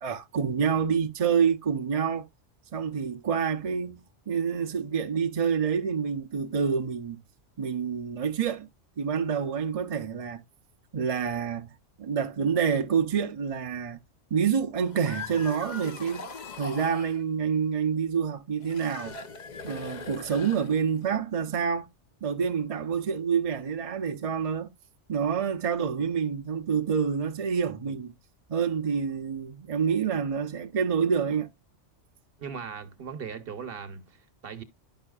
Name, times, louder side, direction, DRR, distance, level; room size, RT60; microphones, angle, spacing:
voice 1, 0.0-2.3 2.7-7.2 7.6-8.7 9.0-10.4 10.9-11.7 12.0-14.0 14.3-16.3 16.5-19.1 19.6-21.9 22.2-24.7 25.1-28.1 28.5-31.5, right 6 dB, 40° right, 0.6 m, -27 dB
sound 1, 14.8-17.2 18.6-21.1, left 4 dB, 45° left, 0.8 m, -41 dB
voice 2, 32.4-34.6, right 6 dB, 55° right, 1.0 m, -39 dB
11.0 x 5.6 x 2.3 m
omnidirectional pair, 1.2 m